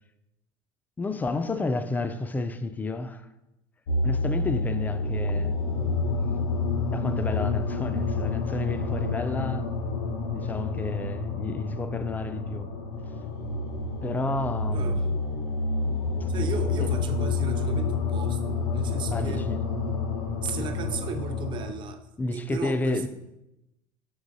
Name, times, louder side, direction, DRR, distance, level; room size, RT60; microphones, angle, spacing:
voice 1, 1.0-3.3 4.0-5.6 6.9-9.7 10.3-12.7 14.0-15.0 16.2-16.3 16.8-16.9 19.1-19.6 22.2-23.1, left 3 dB, 15° left, 0.3 m, -31 dB
sound 1, 3.9-21.7, left 3 dB, 85° left, 0.6 m, -28 dB
voice 2, 14.7-15.0 16.3-19.5 20.4-22.1 22.3-23.1, right 6 dB, 40° right, 0.6 m, -35 dB
6.2 x 3.1 x 2.7 m
supercardioid pair, 85°, 12 cm